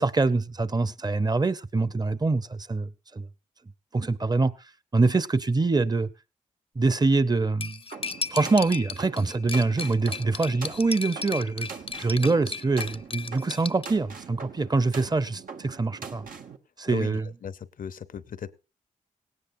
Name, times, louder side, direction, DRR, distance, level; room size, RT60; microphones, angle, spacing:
voice 1, 0.0-3.3 3.9-4.5 4.9-6.1 6.8-7.8 8.3-11.7 12.0-16.3 16.8-17.2, right 3 dB, 30° right, 0.8 m, -24 dB
Cutlery silverware, 7.6-13.9, left 4 dB, 40° left, 0.6 m, -35 dB
sound 1, 7.9-16.6, right 5 dB, 85° right, 1.2 m, -43 dB
voice 2, 16.9-18.5, left 8 dB, 80° left, 0.8 m, -37 dB
17.5 x 17.5 x 2.7 m
cardioid pair, 65°, 14 cm